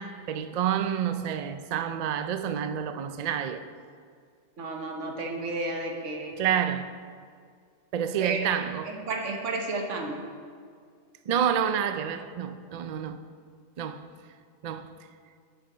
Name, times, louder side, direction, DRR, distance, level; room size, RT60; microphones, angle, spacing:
voice 1, 0.0-3.6 6.4-6.9 7.9-9.0 11.3-13.2 13.8-14.1 14.6-15.0, right 8 dB, 65° right, 0.4 m, -29 dB
voice 2, 4.6-6.4 8.2-8.5 8.9-10.2, right 3 dB, 90° right, 1.5 m, -32 dB
11.0 x 7.6 x 3.9 m
omnidirectional pair, 1.2 m